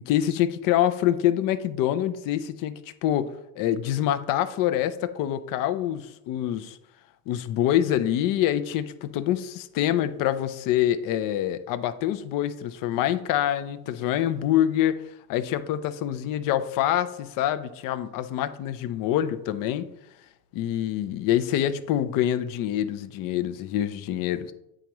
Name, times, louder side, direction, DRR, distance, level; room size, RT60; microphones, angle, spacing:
voice 1, 0.1-6.8 7.3-15.0 15.3-19.9 20.5-24.5, left 11 dB, 60° left, 12 dB, 0.6 m, -26 dB
9.0 x 3.6 x 3.0 m, 0.85 s
supercardioid pair, 100°, 38 cm